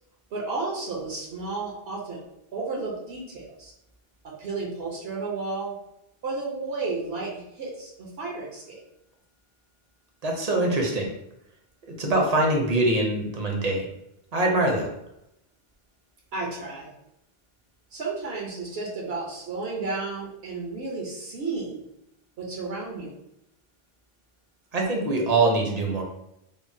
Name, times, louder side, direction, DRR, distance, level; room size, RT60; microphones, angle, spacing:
voice 1, 0.3-2.2 2.5-3.7 4.2-5.8 6.2-8.8 16.3-16.9 17.9-21.8 22.4-23.1, right 3 dB, 75° right, -3 dB, 0.9 m, -32 dB
voice 2, 10.2-11.1 12.0-13.9 14.3-14.9 24.7-26.0, right 2 dB, 45° right, 0 dB, 0.6 m, -23 dB
3.5 x 2.0 x 2.6 m, 0.83 s
omnidirectional pair, 1.1 m